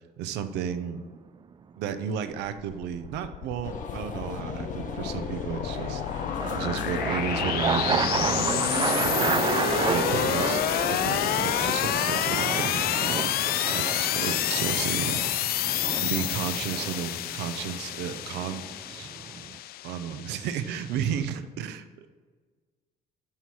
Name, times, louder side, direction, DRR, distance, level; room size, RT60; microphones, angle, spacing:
voice 1, 0.2-1.0 1.8-10.6 10.9-15.3 15.6-15.7 16.0-18.6 18.9-19.1 19.8-22.2, right 8 dB, 90° right, 10 dB, 0.7 m, -33 dB
sound 1, 0.7-1.2 5.0-19.6, right 6 dB, 25° right, 0.4 m, -31 dB
sound 2, 2.6-21.2, left 14 dB, 65° left, 0.4 m, -29 dB
sound 3, 3.6-11.9, left 4 dB, 50° left, 1.1 m, -37 dB
12.5 x 4.7 x 5.5 m, 1.5 s
cardioid pair, 110°, 17 cm